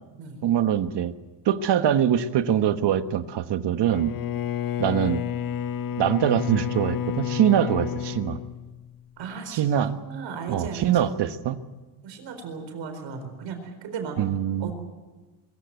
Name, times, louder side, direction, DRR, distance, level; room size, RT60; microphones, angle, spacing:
voice 1, 0.4-1.1 1.4-4.1 4.8-5.2 6.0-8.4 9.5-10.0 10.5-11.6 14.2-14.7, right 10 dB, 70° right, 10 dB, 1.3 m, -23 dB
Bowed string instrument, 3.8-9.2, left 9 dB, 50° left, 0.7 m, -30 dB
voice 2, 9.2-11.4 12.0-14.2 14.6-14.7, right 5 dB, 85° right, 7 dB, 4.4 m, -36 dB
23.0 x 15.5 x 9.2 m, 1.3 s
cardioid pair, 95°, 43 cm